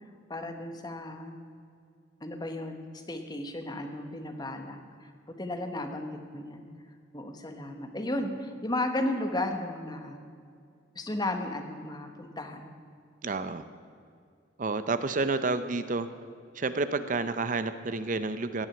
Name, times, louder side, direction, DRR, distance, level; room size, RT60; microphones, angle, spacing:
voice 1, 0.3-1.4 2.2-6.7 7.1-10.2 10.9-12.7, left 1 dB, 20° left, 5 dB, 1.1 m, -34 dB
voice 2, 13.2-13.6 14.6-16.1 16.6-18.7, right 3 dB, 40° right, 11 dB, 0.6 m, -30 dB
17.5 x 6.2 x 9.7 m, 2.3 s
head